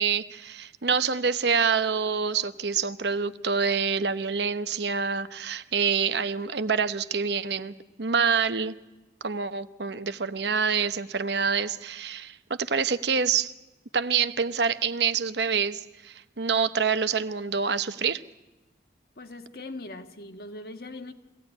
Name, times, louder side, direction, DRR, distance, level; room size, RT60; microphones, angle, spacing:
voice 1, 0.0-8.7 9.2-13.5 13.9-18.2, right 6 dB, 70° right, 0.9 m, -26 dB
voice 2, 19.1-21.1, left 2 dB, 55° left, 1.5 m, -40 dB
23.5 x 16.5 x 9.8 m
head